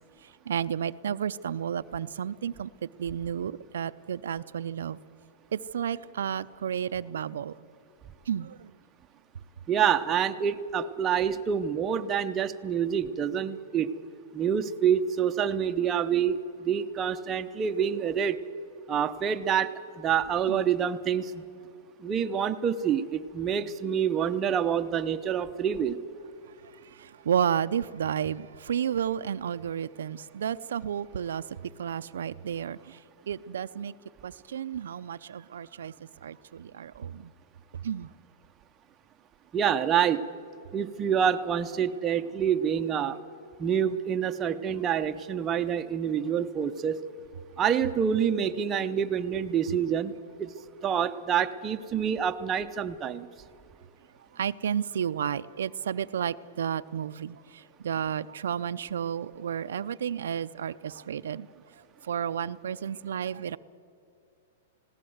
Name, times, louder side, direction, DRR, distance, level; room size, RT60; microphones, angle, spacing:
voice 1, 0.5-2.7 3.0-5.0 5.5-7.5 8.3-8.7 20.5-20.6 26.6-33.0 33.3-33.9 34.2-35.9 36.2-37.3 37.8-38.1 54.3-61.5 62.0-63.6, right 8 dB, 85° right, 13 dB, 0.5 m, -32 dB
voice 2, 9.7-13.9 14.3-18.4 18.9-21.4 22.0-26.0 39.5-40.2 40.7-43.2 43.6-47.0 47.6-50.5 50.8-53.3, right 8 dB, 20° right, 7 dB, 0.7 m, -27 dB
20.0 x 17.0 x 7.9 m, 2.5 s
hypercardioid pair, 150°, 0 cm